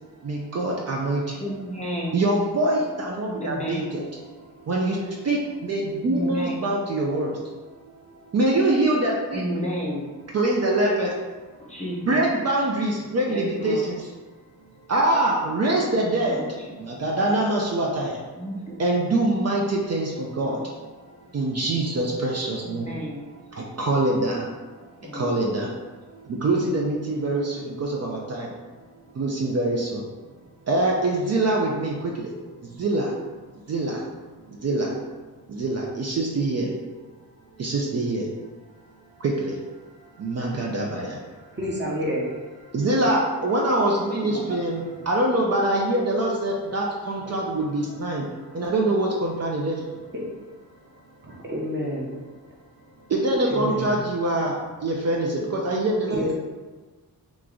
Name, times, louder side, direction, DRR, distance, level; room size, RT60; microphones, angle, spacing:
voice 1, 0.2-1.8 2.1-7.9 8.3-10.0 10.3-11.1 12.0-14.1 14.9-16.5 16.8-18.2 18.8-21.0 21.3-24.6 25.0-25.8 26.1-28.6 29.1-30.0 30.7-32.3 32.6-33.1 33.7-34.1 34.5-35.0 35.5-36.7 37.6-38.3 39.2-39.6 40.2-41.2 41.5-41.6 42.1-49.9 53.1-56.3, right 2 dB, 45° right, -2 dB, 0.5 m, -25 dB
voice 2, 1.4-2.1 3.4-4.0 6.1-6.5 9.3-10.1 11.6-12.2 13.3-13.8 16.1-16.8 18.4-18.8 20.3-20.6 22.6-23.2 25.0-25.4 26.5-26.9 27.5-27.9, equal, 20° left, -4 dB, 0.6 m, -32 dB
voice 3, 41.5-42.3 44.2-44.6 47.3-47.4 50.1-50.3 51.2-52.1 53.5-53.9 56.1-56.3, equal, 30° right, -3 dB, 0.8 m, -29 dB
3.0 x 2.3 x 3.7 m, 1.3 s
wide cardioid pair, 100°, 36 cm